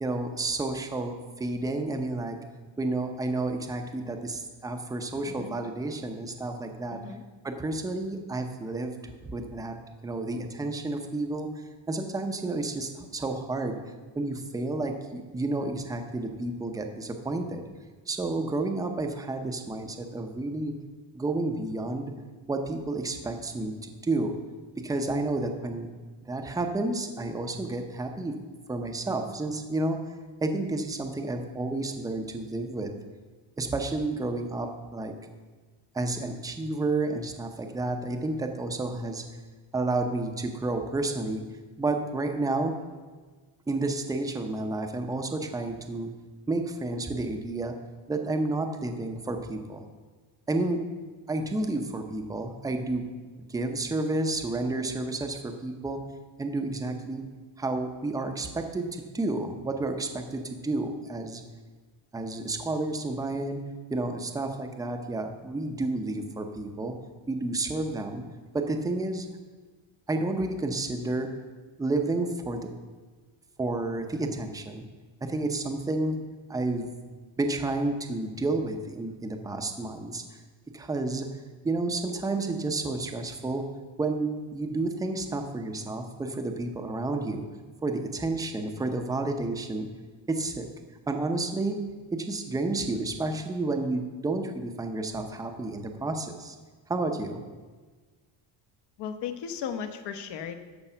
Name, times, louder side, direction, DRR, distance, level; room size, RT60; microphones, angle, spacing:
voice 1, 0.0-2.4 2.8-7.0 7.4-9.0 9.2-9.8 10.0-11.5 11.9-13.7 14.1-17.7 18.1-20.7 21.1-22.1 22.5-24.4 24.8-25.9 26.2-28.3 28.7-30.0 30.4-32.9 33.6-35.2 35.9-39.2 39.7-41.4 41.8-42.7 43.7-46.1 46.5-47.8 48.1-49.8 50.5-50.8 51.3-53.1 53.5-56.0 56.4-57.2 57.6-61.4 62.1-63.6 63.9-67.0 67.3-68.2 68.5-69.3 70.1-71.3 71.8-72.7 73.6-74.8 75.2-76.2 76.5-76.9 77.4-80.2 80.7-81.3 81.6-83.6 84.0-87.4 87.8-89.9 90.3-90.7 91.1-91.8 92.1-96.6 96.9-97.4, right 2 dB, 10° right, 5 dB, 0.6 m, -30 dB
voice 2, 6.9-7.2 99.0-100.5, left 8 dB, 60° left, 8 dB, 1.1 m, -36 dB
13.0 x 5.3 x 6.7 m, 1.4 s
cardioid pair, 170°, 47 cm